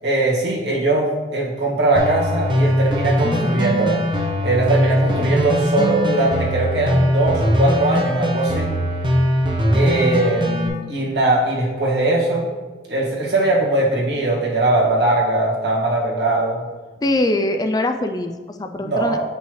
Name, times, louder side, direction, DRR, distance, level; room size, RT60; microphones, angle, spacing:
voice 1, 0.0-4.0 4.4-8.7 9.7-12.5 12.9-16.6 18.8-19.2, right 2 dB, 75° right, -4 dB, 1.7 m, -20 dB
sound 1, 2.0-10.7, equal, 25° right, 0.8 m, -20 dB
voice 2, 3.2-3.6 5.1-5.3 9.7-10.1 17.0-19.2, left 1 dB, 20° left, 6 dB, 0.3 m, -23 dB
7.8 x 5.5 x 3.1 m, 1.3 s
head